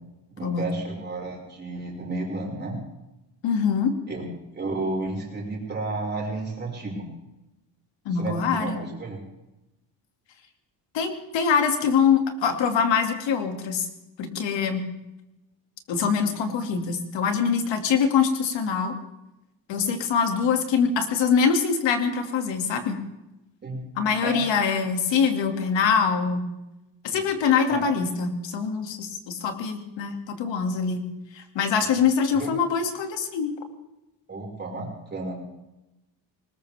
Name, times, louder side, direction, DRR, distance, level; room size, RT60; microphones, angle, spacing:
voice 1, 0.4-2.8 4.1-4.3 4.5-7.1 8.2-9.2 23.6-23.8 24.2-24.4 27.1-27.2 27.7-27.8 31.8-31.9 32.4-32.5 34.3-35.3, right 2 dB, 25° right, -2 dB, 5.7 m, -32 dB
voice 2, 3.4-4.0 8.0-8.8 10.9-13.9 14.2-14.9 15.9-18.9 19.7-23.0 24.0-26.5 27.0-31.0 31.3-33.5, left 6 dB, 75° left, 5 dB, 2.6 m, -24 dB
20.5 x 20.0 x 3.6 m, 0.95 s
cardioid pair, 160°, 45 cm